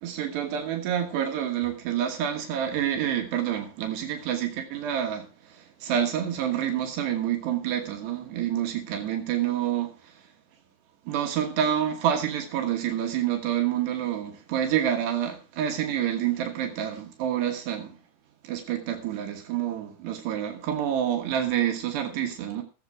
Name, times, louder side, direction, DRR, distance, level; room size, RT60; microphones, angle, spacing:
voice 1, 0.0-10.3 11.1-18.0 18.4-22.6, right 10 dB, 85° right, 3.6 m, -28 dB
15.5 x 8.1 x 4.8 m
omnidirectional pair, 4.8 m